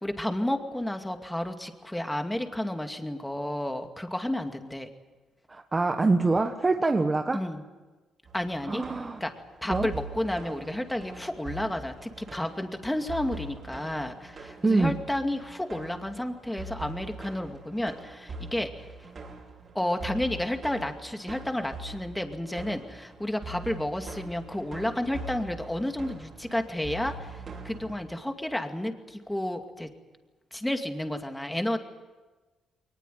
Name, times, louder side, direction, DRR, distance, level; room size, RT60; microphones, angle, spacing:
voice 1, 0.0-4.9 7.3-7.6 8.3-8.8 9.2-9.3 9.6-18.8 19.7-29.9 30.5-31.8, left 1 dB, 5° left, 5 dB, 2.4 m, -31 dB
voice 2, 5.5-7.4 8.7-9.2 9.7-9.9 14.6-15.0, right 3 dB, 25° right, 6 dB, 1.3 m, -25 dB
sound 1, 8.3-28.1, right 2 dB, 45° right, 5.7 m, -43 dB
22.5 x 19.5 x 9.4 m, 1.3 s
cardioid pair, 90°, 0 cm